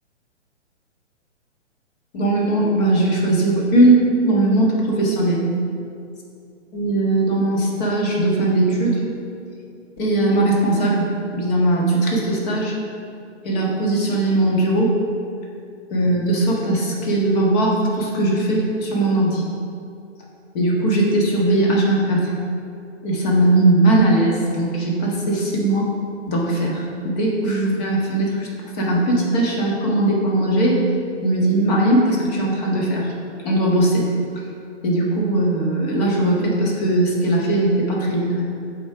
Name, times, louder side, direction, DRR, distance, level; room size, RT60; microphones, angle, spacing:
voice 1, 2.1-5.5 6.7-9.0 10.0-12.7 13.4-14.9 15.9-19.5 20.5-22.3 23.0-25.9 26.3-28.5 28.8-30.8 31.2-33.1 33.4-34.1 34.8-38.5, right 1 dB, 35° left, -2 dB, 1.4 m, -19 dB
7.5 x 3.8 x 4.8 m, 2.4 s
figure-of-eight pair, 135°, 36 cm